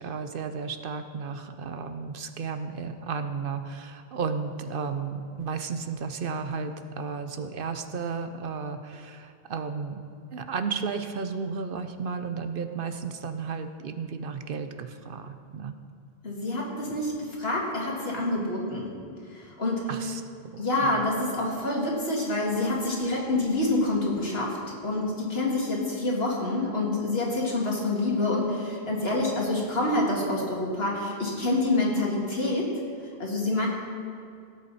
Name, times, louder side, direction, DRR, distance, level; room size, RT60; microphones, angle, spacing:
voice 1, 0.0-10.0 10.3-15.8 19.9-20.2 20.5-20.9, right 5 dB, 65° right, 8 dB, 0.8 m, -33 dB
voice 2, 16.2-18.9 19.3-19.9 20.6-24.6 24.8-32.7 33.2-33.7, left 2 dB, 80° left, -3 dB, 2.5 m, -27 dB
17.5 x 8.4 x 4.1 m, 2.3 s
omnidirectional pair, 1.0 m